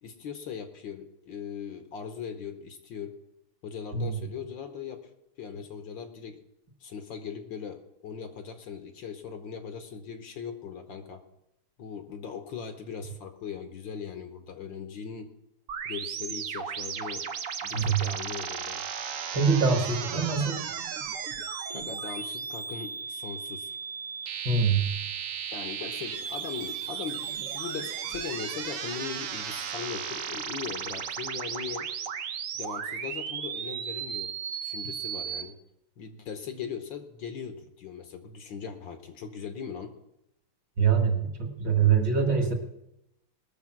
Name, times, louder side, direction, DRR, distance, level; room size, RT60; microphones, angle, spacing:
voice 1, 0.0-3.1 3.6-5.0 5.4-6.4 6.8-11.2 11.8-15.3 15.8-17.3 17.6-18.9 21.7-23.8 25.5-31.9 32.5-34.3 34.6-35.6 36.0-39.9, left 7 dB, 65° left, 7 dB, 1.5 m, -39 dB
sound 1, 15.7-35.4, right 7 dB, 70° right, 0.7 m, -35 dB
voice 2, 19.3-20.6 24.5-24.9 40.8-42.5, right 5 dB, 55° right, 4 dB, 2.4 m, -24 dB
20.0 x 6.8 x 5.9 m, 0.83 s
omnidirectional pair, 2.4 m